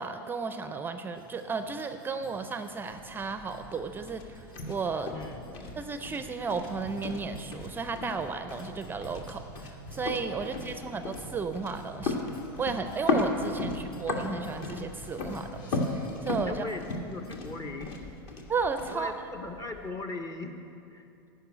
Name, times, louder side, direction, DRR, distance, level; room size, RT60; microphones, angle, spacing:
voice 1, 0.0-5.1 5.8-12.3 12.6-16.6 18.5-19.1, right 4 dB, 15° right, 8 dB, 0.5 m, -34 dB
sound 1, 1.1-17.6, right 1 dB, 85° left, 1.6 m, -51 dB
sound 2, 2.9-19.9, left 3 dB, 45° left, 1.5 m, -36 dB
voice 2, 5.1-5.7 10.4-11.0 13.5-13.6 16.5-18.0 18.9-21.1, left 3 dB, 30° left, 5 dB, 0.8 m, -40 dB
sound 3, 6.8-16.3, equal, 65° left, 3.1 m, -50 dB
11.5 x 5.4 x 8.6 m, 2.7 s
hypercardioid pair, 100°, 12 cm